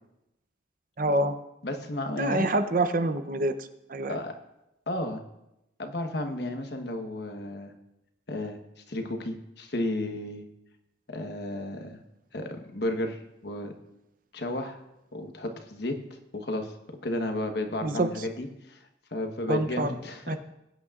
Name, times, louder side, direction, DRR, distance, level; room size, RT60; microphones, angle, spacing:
voice 1, 1.0-1.4 2.2-3.5 3.9-4.2 17.8-18.1 19.5-19.9 20.3-20.4, right 2 dB, 45° right, 10 dB, 0.6 m, -26 dB
voice 2, 1.6-2.5 4.1-4.3 4.9-5.2 5.8-7.7 8.3-8.6 8.9-10.4 11.1-12.0 12.3-13.7 14.3-14.8 15.1-18.8 19.1-20.4, left 1 dB, 60° left, 5 dB, 1.2 m, -33 dB
21.0 x 9.1 x 2.4 m, 0.88 s
head